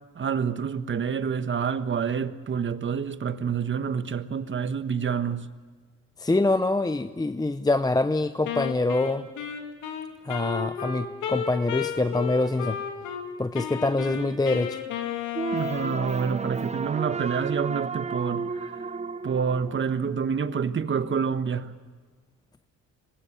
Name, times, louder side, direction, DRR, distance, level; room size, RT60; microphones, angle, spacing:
voice 1, 0.1-5.5 15.5-18.8 19.2-21.7, right 6 dB, 40° right, 1.3 m, -28 dB
voice 2, 6.2-9.3 10.2-12.8 13.4-14.8, left 2 dB, 15° left, 0.7 m, -25 dB
Wind instrument woodwind instrument, 8.4-13.2 13.5-16.2, left 8 dB, 85° left, 2.8 m, -33 dB
sound 1, 15.3-20.4, right 4 dB, 20° right, 0.7 m, -32 dB
24.5 x 20.5 x 8.5 m
cardioid pair, 90°, 30 cm